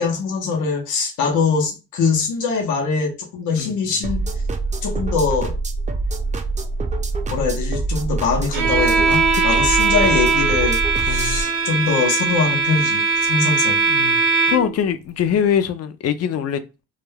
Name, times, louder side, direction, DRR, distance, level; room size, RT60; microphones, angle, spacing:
voice 1, 0.0-4.2 4.8-5.5 7.3-13.8, left 5 dB, 85° left, 0.7 m, -22 dB
sound 1, 4.0-11.4, right 3 dB, 25° right, 0.5 m, -25 dB
Bowed string instrument, 8.5-14.8, right 5 dB, 85° right, 0.6 m, -20 dB
voice 2, 11.1-11.4 13.9-14.2 14.5-16.6, left 8 dB, 55° left, 0.4 m, -23 dB
2.3 x 2.2 x 3.2 m
cardioid pair, 90°, 30 cm